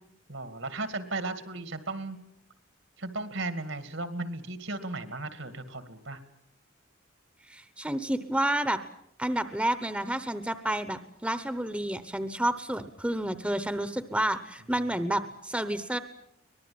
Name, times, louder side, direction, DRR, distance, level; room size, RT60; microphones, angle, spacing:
voice 1, 0.3-2.2 3.0-6.2, right 2 dB, 70° right, 11 dB, 2.3 m, -35 dB
voice 2, 7.5-8.8 9.2-16.0, right 1 dB, 5° right, 11 dB, 0.9 m, -30 dB
24.5 x 20.0 x 8.7 m, 0.77 s
head